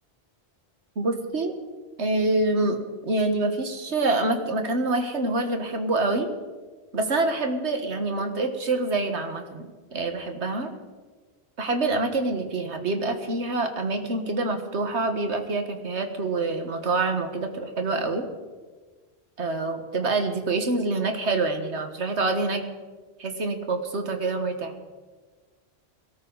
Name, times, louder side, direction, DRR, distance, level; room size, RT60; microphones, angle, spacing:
voice 1, 1.0-1.5 2.0-6.3 6.9-9.7 9.9-10.7 11.6-18.2 19.4-22.6 23.2-24.7, right 2 dB, 85° right, 6 dB, 1.8 m, -26 dB
22.0 x 13.0 x 4.0 m, 1.4 s
omnidirectional pair, 1.1 m